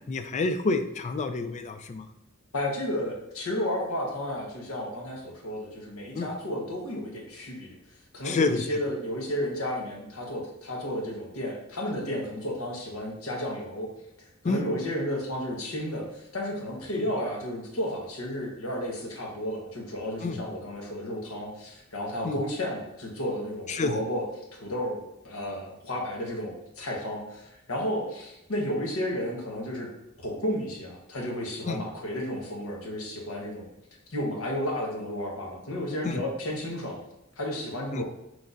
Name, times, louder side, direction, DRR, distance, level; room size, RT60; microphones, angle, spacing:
voice 1, 0.1-2.0 6.1-6.3 8.2-8.6 14.4-14.7 20.2-20.4 22.2-22.4 23.7-24.0 31.7-31.8 36.0-36.2 37.9-38.0, left 3 dB, 35° left, 9 dB, 0.4 m, -28 dB
voice 2, 2.5-7.8 8.1-13.9 14.4-24.3 24.5-25.0 25.2-29.9 30.2-33.7 34.1-37.0 37.4-38.0, left 1 dB, 75° left, -1 dB, 1.2 m, -32 dB
6.1 x 3.2 x 2.6 m, 0.89 s
head